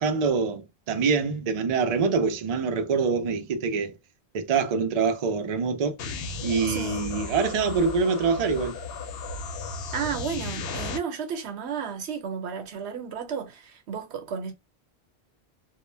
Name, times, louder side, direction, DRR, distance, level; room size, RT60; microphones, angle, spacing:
voice 1, 0.0-3.9 4.3-6.0 6.4-8.8, right 5 dB, 50° right, 0.5 m, -25 dB
sound 1, 6.0-11.0, left 3 dB, 70° left, 0.7 m, -35 dB
voice 2, 6.7-7.1 9.9-14.5, right 6 dB, 90° right, 1.0 m, -33 dB
2.1 x 2.0 x 3.1 m
omnidirectional pair, 1.1 m